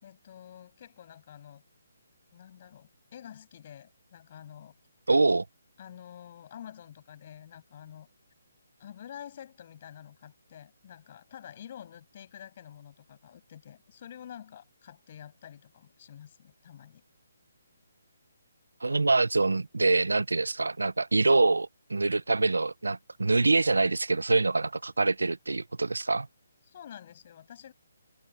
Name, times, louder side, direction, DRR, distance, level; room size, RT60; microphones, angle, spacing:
voice 1, 0.0-1.6 2.3-4.8 5.8-8.1 8.8-17.0 26.7-27.7, left 10 dB, 40° left, 6.9 m, -48 dB
voice 2, 5.1-5.4 18.8-26.3, right 3 dB, 90° right, 0.9 m, -25 dB
hypercardioid pair, 150°, 0 cm